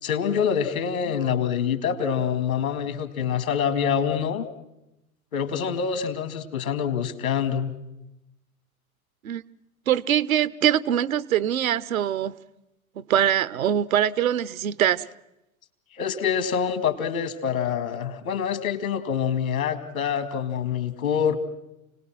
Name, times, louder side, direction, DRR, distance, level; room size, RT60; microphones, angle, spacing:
voice 1, 0.0-4.5 5.3-7.7 16.0-21.5, left 7 dB, 70° left, 2.4 m, -26 dB
voice 2, 9.9-12.3 13.0-15.0, right 10 dB, 70° right, 0.8 m, -23 dB
29.5 x 19.0 x 6.1 m
figure-of-eight pair, 80°, 43 cm